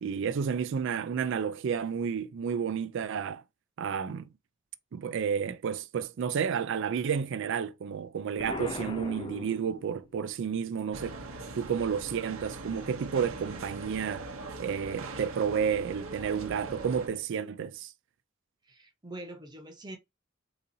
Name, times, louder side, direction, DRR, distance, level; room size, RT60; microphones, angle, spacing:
voice 1, 0.0-3.4 3.8-4.3 4.9-11.2 11.5-14.3 14.6-17.9, right 7 dB, 65° right, 0.4 m, -31 dB
Explosion, 8.4-10.2, left 3 dB, 25° left, 0.4 m, -38 dB
sound 1, 10.9-17.1, right 2 dB, 80° right, 0.8 m, -41 dB
voice 2, 18.7-20.0, right 1 dB, 20° right, 0.9 m, -44 dB
4.0 x 2.6 x 2.7 m
head